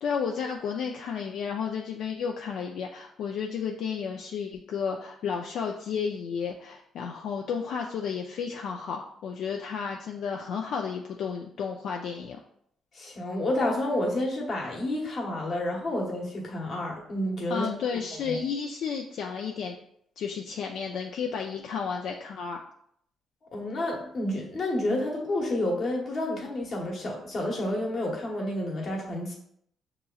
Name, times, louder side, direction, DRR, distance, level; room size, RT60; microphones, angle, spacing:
voice 1, 0.0-12.4 17.5-19.8 20.2-22.6, left 6 dB, 65° left, 1 dB, 0.4 m, -32 dB
voice 2, 12.9-17.7 18.2-18.4 23.5-29.3, left 1 dB, 40° left, -1 dB, 1.0 m, -30 dB
6.6 x 2.9 x 2.3 m, 0.69 s
cardioid pair, 165°, 0 cm